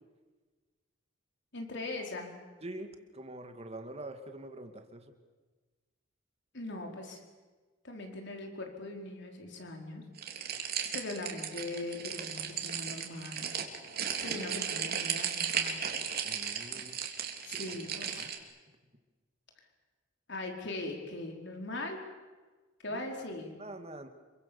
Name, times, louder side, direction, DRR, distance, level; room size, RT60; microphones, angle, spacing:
voice 1, 1.5-2.3 6.5-7.2 7.8-10.0 10.9-13.5 14.2-15.8 17.4-18.3 20.3-22.0 22.8-23.5, left 2 dB, 60° left, 2 dB, 4.6 m, -40 dB
voice 2, 2.6-5.1 16.2-17.0 17.5-18.4 22.9-23.0 23.6-24.1, right 1 dB, 30° right, 6 dB, 2.3 m, -45 dB
sound 1, 10.2-18.4, right 8 dB, 50° right, 3.1 m, -35 dB
27.5 x 23.5 x 7.2 m, 1.3 s
head